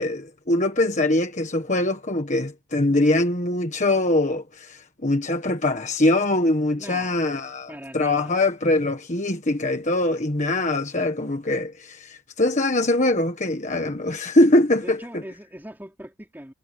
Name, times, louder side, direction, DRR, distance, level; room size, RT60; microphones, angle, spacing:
voice 1, 0.0-15.0, left 1 dB, 35° left, 1.5 m, -22 dB
voice 2, 6.7-7.2 7.7-8.5 14.8-16.5, equal, 10° right, 4.7 m, -41 dB
head